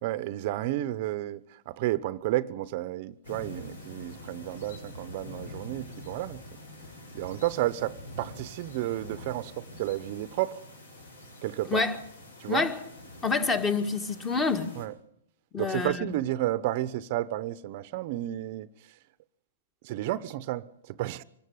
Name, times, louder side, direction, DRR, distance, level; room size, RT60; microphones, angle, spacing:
voice 1, 0.0-6.4 7.1-10.6 11.4-11.9 12.4-12.7 14.8-14.9 15.6-18.7 19.8-21.2, right 15 dB, 45° right, 0.8 m, -32 dB
sound 1, 3.2-14.9, left 1 dB, 85° left, 7.3 m, -46 dB
voice 2, 12.5-12.8 13.2-14.7 15.5-16.0, left 4 dB, 15° left, 2.0 m, -27 dB
24.5 x 12.5 x 9.4 m
hypercardioid pair, 140°, 0 cm